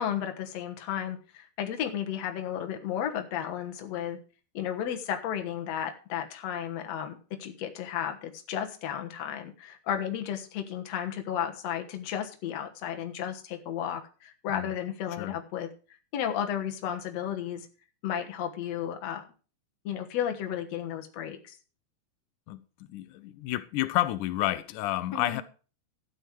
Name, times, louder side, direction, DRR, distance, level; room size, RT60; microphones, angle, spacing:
voice 1, 0.0-4.2 4.5-15.7 16.1-17.7 18.0-19.3 19.8-21.6 25.1-25.4, left 9 dB, 60° left, 2.0 m, -33 dB
voice 2, 22.9-25.4, left 15 dB, 90° left, 1.7 m, -30 dB
12.0 x 9.5 x 4.7 m
omnidirectional pair, 4.4 m